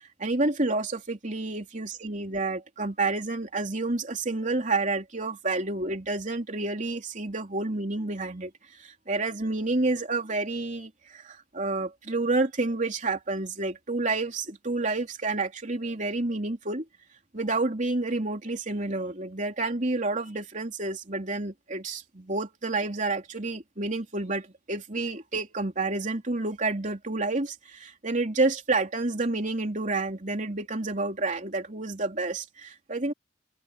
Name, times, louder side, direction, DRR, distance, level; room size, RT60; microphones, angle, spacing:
voice 1, 0.0-8.5 8.8-16.8 17.3-33.1, right 2 dB, 40° right, 3.3 m, -29 dB
head